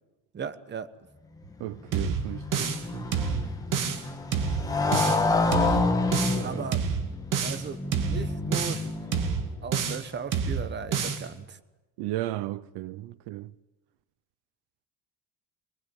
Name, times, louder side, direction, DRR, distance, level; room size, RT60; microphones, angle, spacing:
voice 1, 0.3-0.9 6.4-6.8 7.4-9.1 9.6-11.6, right 6 dB, 25° right, 1.1 m, -37 dB
Motorcycle, 1.5-9.6, left 3 dB, 10° left, 2.2 m, -29 dB
voice 2, 1.6-3.5 6.3-6.6 12.0-13.5, right 15 dB, 80° right, 0.8 m, -35 dB
sound 1, 1.9-2.8 3.1-4.0 4.3-5.2 5.5-6.4 6.7-7.6 7.9-8.8 9.1-10.0 10.3-11.2, right 6 dB, 50° right, 2.3 m, -28 dB
25.5 x 19.5 x 9.0 m
cardioid pair, 150°, 39 cm